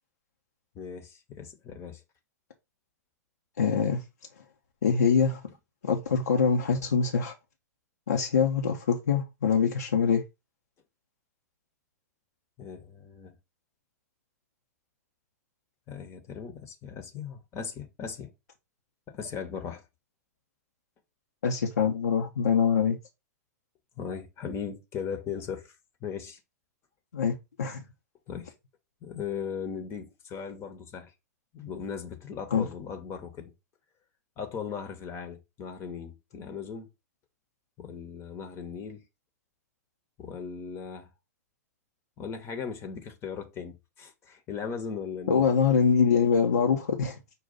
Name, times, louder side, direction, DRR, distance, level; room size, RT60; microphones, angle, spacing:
voice 1, 0.7-2.0 12.6-13.3 15.9-18.3 19.1-19.8 24.0-25.8 26.0-26.4 28.3-28.5 29.0-31.1 31.5-33.5 34.4-36.9 37.8-39.0 40.2-41.1 42.2-45.5, left 6 dB, 30° left, 0.8 m, -38 dB
voice 2, 3.6-4.0 4.8-5.4 5.8-7.3 8.1-10.2 21.4-23.0 27.1-27.8 32.5-32.6 45.3-47.2, left 6 dB, 75° left, 0.6 m, -24 dB
5.4 x 2.3 x 3.9 m
figure-of-eight pair, 100°, 9 cm